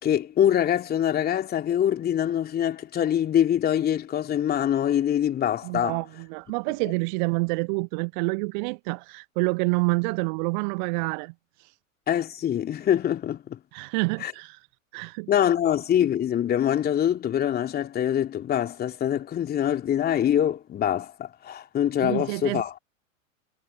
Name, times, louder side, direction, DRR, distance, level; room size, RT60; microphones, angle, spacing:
voice 1, 0.0-6.0 12.1-13.6 14.2-14.3 15.3-22.7, left 10 dB, 25° left, 2.9 m, -24 dB
voice 2, 5.6-11.3 11.6-11.7 13.7-14.7 14.9-15.3 22.0-22.8, right 31 dB, 35° right, 0.9 m, -28 dB
figure-of-eight pair, 95°, 41 cm